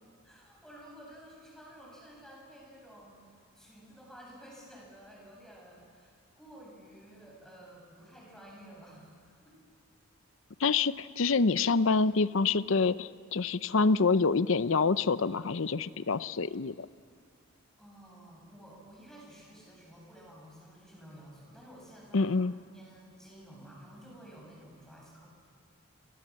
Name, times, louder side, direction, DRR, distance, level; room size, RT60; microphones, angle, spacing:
voice 1, 0.2-9.6 17.8-22.4 22.7-25.3, right 1 dB, ahead, -3 dB, 7.9 m, -52 dB
voice 2, 10.6-16.9 22.1-22.5, left 4 dB, 65° left, 15 dB, 0.6 m, -26 dB
29.0 x 25.0 x 7.6 m, 2.1 s
head